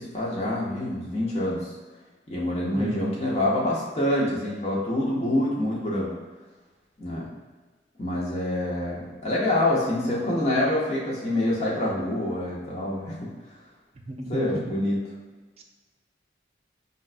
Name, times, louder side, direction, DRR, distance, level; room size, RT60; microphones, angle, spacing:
voice 1, 0.0-1.7 2.3-6.1 7.0-7.3 8.0-13.3 14.3-15.0, left 1 dB, 35° left, -5 dB, 0.7 m, -26 dB
voice 2, 2.7-3.2 14.1-14.4, right 1 dB, 35° right, 2 dB, 0.3 m, -32 dB
5.2 x 2.2 x 2.4 m, 1.3 s
head